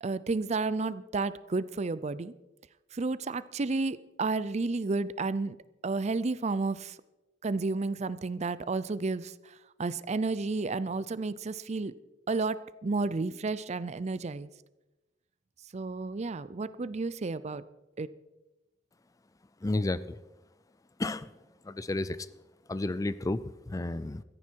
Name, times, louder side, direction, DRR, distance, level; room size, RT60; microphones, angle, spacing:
voice 1, 0.0-2.3 2.9-5.6 5.8-7.0 7.4-9.5 9.8-11.9 12.3-14.5 15.7-17.6 18.0-18.1, right 3 dB, 35° right, 16 dB, 0.5 m, -31 dB
voice 2, 19.6-20.2 21.0-21.3 21.6-22.2 22.7-24.2, left 2 dB, 20° left, 16 dB, 0.4 m, -32 dB
16.5 x 14.0 x 4.6 m, 1.0 s
head